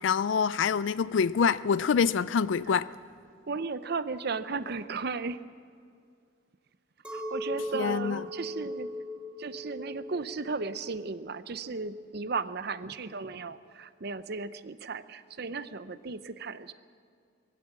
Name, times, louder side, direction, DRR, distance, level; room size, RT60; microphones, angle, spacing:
voice 1, 0.0-2.9 7.7-8.2, left 6 dB, 70° left, 0.4 m, -26 dB
voice 2, 3.5-5.4 7.1-8.9 9.4-16.7, right 4 dB, 55° right, 0.7 m, -35 dB
Chink clink, 7.0-12.5, left 1 dB, 5° right, 2.8 m, -39 dB
22.0 x 16.0 x 7.3 m
head